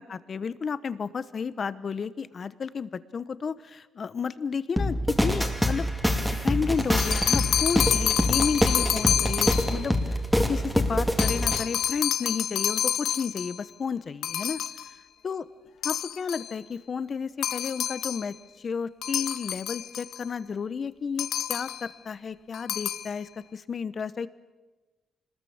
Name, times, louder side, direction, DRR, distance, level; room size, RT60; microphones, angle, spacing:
voice 1, 0.0-5.9 6.4-10.0 10.5-14.6 15.2-15.5 15.8-18.3 18.6-24.3, left 6 dB, 45° left, 15 dB, 1.0 m, -32 dB
sound 1, 4.8-11.6, equal, ahead, 2.4 m, -25 dB
sound 2, 6.8-9.9 11.2-13.6 14.2-14.9 15.8-16.5 17.4-18.3 19.0-20.2 21.2-21.9 22.5-23.1, left 10 dB, 80° left, 0.9 m, -28 dB
26.0 x 20.5 x 7.2 m, 1.2 s
cardioid pair, 105°, 0 cm